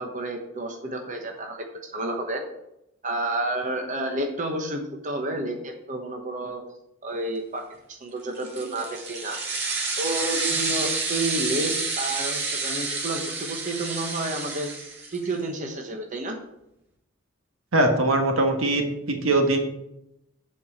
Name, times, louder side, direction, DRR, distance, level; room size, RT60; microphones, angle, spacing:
voice 1, 0.0-2.4 3.0-6.6 7.0-7.6 7.9-9.4 10.0-14.7 15.1-16.4, right 1 dB, 40° right, 2 dB, 1.1 m, -30 dB
sound 1, 8.3-15.3, right 4 dB, 55° right, 2.2 m, -29 dB
voice 2, 17.7-19.6, right 2 dB, 80° right, 4 dB, 1.5 m, -21 dB
7.9 x 4.7 x 7.2 m, 0.83 s
head